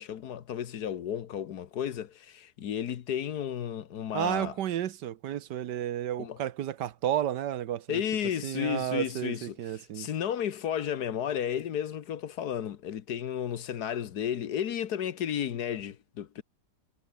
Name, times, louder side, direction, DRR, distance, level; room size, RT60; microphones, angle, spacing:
voice 1, 0.0-4.5 6.2-6.4 7.9-9.6 9.9-16.4, left 9 dB, 65° left, 1.5 m, -33 dB
voice 2, 4.1-8.0 8.4-10.1, right 11 dB, 80° right, 1.5 m, -32 dB
omnidirectional pair, 1.9 m